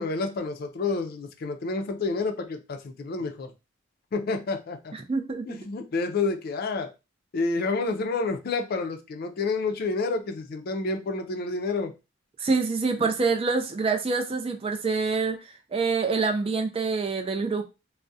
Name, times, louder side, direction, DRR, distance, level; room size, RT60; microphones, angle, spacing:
voice 1, 0.0-3.5 4.1-4.9 5.5-6.9 7.3-11.9, left 3 dB, 50° left, 0.4 m, -29 dB
voice 2, 4.9-5.6 12.4-15.4 15.7-17.6, right 4 dB, 30° right, 0.4 m, -26 dB
2.3 x 2.0 x 2.6 m
head